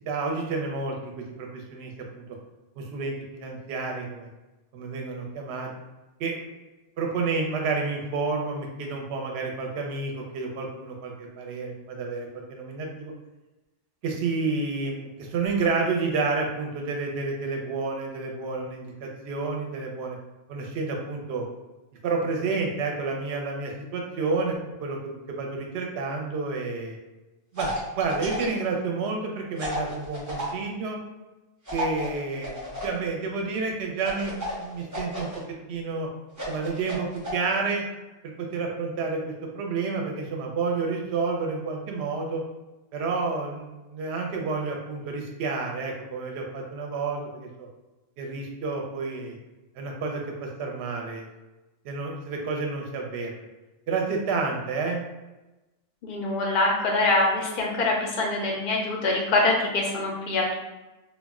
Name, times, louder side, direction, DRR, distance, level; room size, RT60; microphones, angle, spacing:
voice 1, 0.1-2.2 2.8-4.3 4.7-5.7 6.2-6.4 7.0-13.1 14.0-20.2 20.5-21.4 22.0-27.0 27.5-27.7 28.0-31.0 31.7-35.3 35.7-36.1 36.5-37.8 38.4-42.4 42.9-47.7 48.2-49.4 49.8-51.3 51.8-53.3 53.9-55.1, right 4 dB, 65° right, 1 dB, 0.8 m, -30 dB
sound 1, 27.6-28.6 29.6-30.5 31.7-33.0 34.0-35.4 36.3-37.3, left 1 dB, 20° right, 0.4 m, -33 dB
voice 2, 56.0-60.5, left 2 dB, 60° left, -1 dB, 0.5 m, -24 dB
2.3 x 2.1 x 3.5 m, 1.1 s
omnidirectional pair, 1.4 m